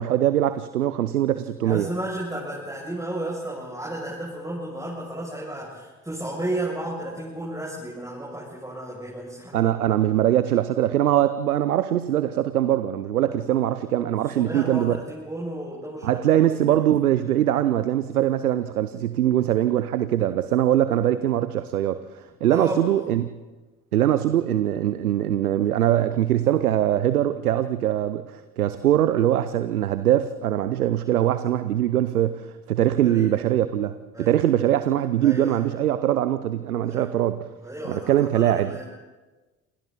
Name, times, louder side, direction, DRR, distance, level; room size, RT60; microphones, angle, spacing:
voice 1, 0.0-1.9 9.5-15.0 16.0-23.3 23.9-37.4 37.9-38.8, right 12 dB, 80° right, 13 dB, 0.8 m, -22 dB
voice 2, 1.6-9.7 13.2-13.3 14.3-16.9 22.5-23.1 33.0-33.3 34.1-34.4 35.2-35.7 36.8-37.1 37.6-38.8, right 1 dB, 10° right, -5 dB, 7.2 m, -33 dB
28.0 x 27.5 x 4.2 m, 1.2 s
figure-of-eight pair, 50°, 44 cm